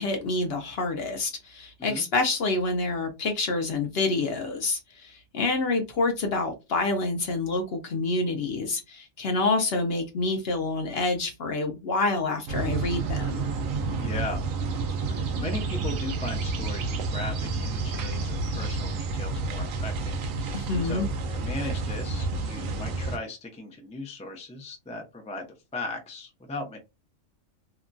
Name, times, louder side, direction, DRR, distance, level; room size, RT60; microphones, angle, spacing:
voice 1, 0.0-13.4 20.5-21.1, left 3 dB, 60° left, 0.7 m, -27 dB
sound 1, 12.5-23.2, right 3 dB, 80° right, 1.0 m, -30 dB
voice 2, 14.0-14.4 15.0-21.1 21.3-25.4 25.7-26.8, left 2 dB, 10° left, 0.3 m, -37 dB
2.8 x 2.2 x 2.5 m
omnidirectional pair, 1.4 m